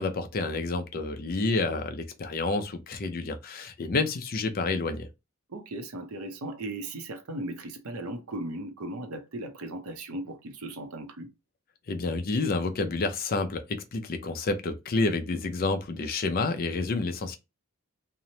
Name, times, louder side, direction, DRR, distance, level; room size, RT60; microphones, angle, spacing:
voice 1, 0.0-5.1 11.9-17.4, left 3 dB, 40° left, 0.4 m, -29 dB
voice 2, 5.5-11.3, right 1 dB, 75° right, 0.6 m, -37 dB
2.9 x 2.0 x 2.7 m
head